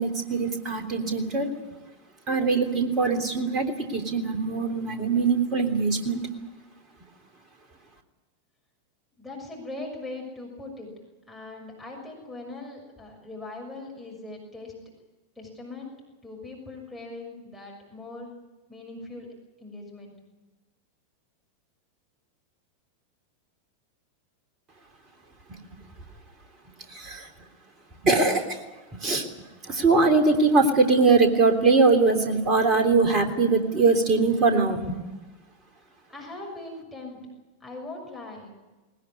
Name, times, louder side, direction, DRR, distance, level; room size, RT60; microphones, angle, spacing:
voice 1, 0.0-1.5 2.3-6.3 25.5-25.6 26.9-27.3 28.0-28.6 29.0-35.0, right 3 dB, 30° right, 6 dB, 3.3 m, -22 dB
voice 2, 9.2-14.7 15.4-15.9 16.2-18.4 18.7-19.3 19.6-20.1 36.1-37.2 37.6-38.5, left 2 dB, ahead, -3 dB, 6.5 m, -40 dB
20.0 x 20.0 x 9.8 m, 1.2 s
figure-of-eight pair, 90°, 0 cm